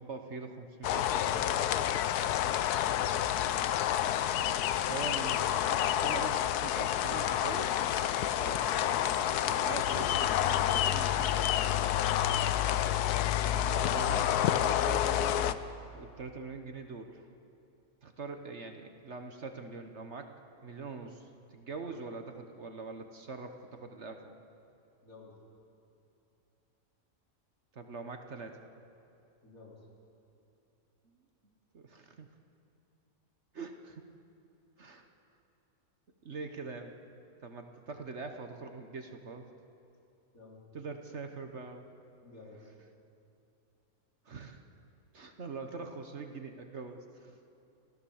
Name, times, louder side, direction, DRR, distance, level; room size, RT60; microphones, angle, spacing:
voice 1, 0.0-2.1 4.9-7.7 8.3-11.3 13.7-15.6 15.9-17.3 18.0-20.3 20.6-24.3 27.7-28.6 31.0-31.1 31.7-32.3 33.5-34.0 34.8-35.1 36.2-36.9 37.4-39.5 40.7-41.9 44.2-44.6 45.1-47.4, right 4 dB, 50° right, 6 dB, 1.3 m, -43 dB
sound 1, 0.8-15.5, left 11 dB, 85° left, 1.2 m, -29 dB
voice 2, 25.0-25.3 29.4-29.8 40.3-40.6 42.2-42.7, left 3 dB, 60° left, -3 dB, 4.4 m, -52 dB
29.0 x 15.0 x 7.1 m, 2.7 s
omnidirectional pair, 1.6 m